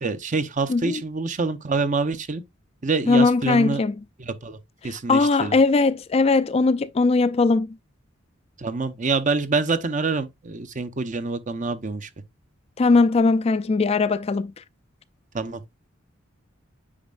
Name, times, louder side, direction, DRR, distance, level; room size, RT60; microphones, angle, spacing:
voice 1, 0.0-2.4 2.8-3.8 4.2-4.6 4.8-5.6 8.6-12.1 15.3-15.6, right 4 dB, 40° right, 0.8 m, -26 dB
voice 2, 0.7-1.0 3.1-3.9 4.8-7.7 12.8-14.5, left 3 dB, 30° left, 0.4 m, -20 dB
8.6 x 5.3 x 2.4 m
head